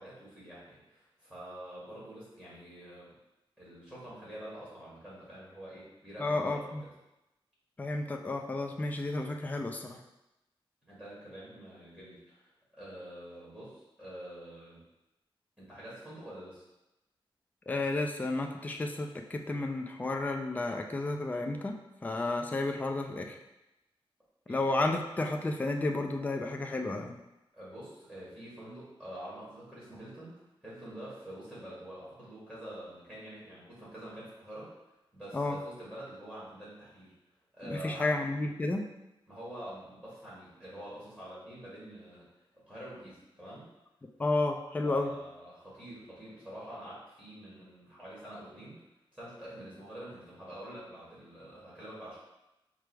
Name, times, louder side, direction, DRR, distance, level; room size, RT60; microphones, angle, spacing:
voice 1, 0.0-3.1 3.6-6.7 10.8-12.5 12.8-14.8 15.6-16.6 24.5-24.6 27.5-34.8 35.1-37.2 37.5-38.1 39.3-42.3 42.5-43.7 44.8-48.8 49.1-52.2, right 1 dB, 10° right, -8 dB, 1.4 m, -46 dB
voice 2, 6.2-6.8 7.8-10.0 17.7-23.4 24.5-27.2 35.3-35.6 37.7-38.9 44.2-45.1, left 2 dB, 15° left, 3 dB, 0.3 m, -32 dB
4.7 x 2.0 x 4.5 m, 0.93 s
wide cardioid pair, 160°, 9 cm